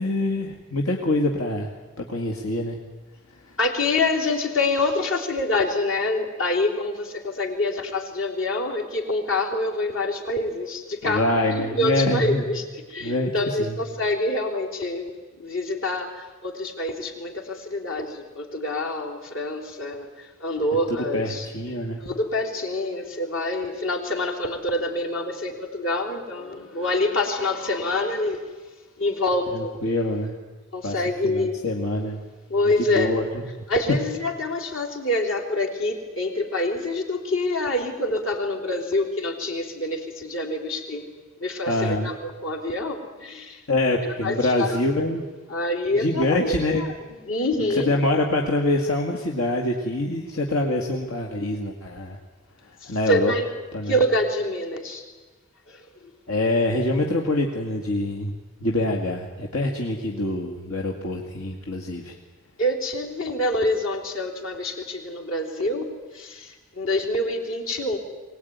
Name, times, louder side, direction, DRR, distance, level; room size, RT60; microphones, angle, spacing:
voice 1, 0.0-1.7 2.0-2.8 11.0-12.4 13.0-13.8 21.1-22.0 29.5-30.3 30.8-32.2 32.8-33.4 41.7-42.1 43.7-45.2 45.9-46.8 47.8-52.2 52.8-53.3 53.7-54.0 56.3-58.3 58.6-62.2, left 1 dB, 85° left, 0 dB, 2.3 m, -25 dB
voice 2, 3.6-11.2 11.6-12.6 12.9-15.1 15.4-21.5 22.0-28.5 29.0-29.7 30.7-31.6 32.5-33.1 33.7-41.1 41.4-43.6 44.2-45.1 45.5-46.9 47.3-47.9 52.8-53.5 53.9-55.0 55.7-56.1 62.6-68.0, left 2 dB, 65° left, 1 dB, 3.7 m, -26 dB
23.5 x 19.0 x 9.6 m, 1.3 s
head